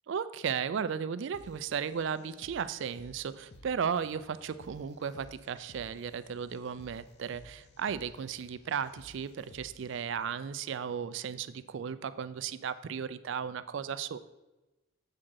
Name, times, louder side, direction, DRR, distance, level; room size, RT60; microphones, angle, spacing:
voice 1, 0.1-14.2, right 7 dB, 60° right, 13 dB, 0.3 m, -35 dB
sound 1, 1.3-10.3, left 1 dB, 50° left, 0.6 m, -57 dB
7.5 x 3.7 x 6.2 m, 1.1 s
head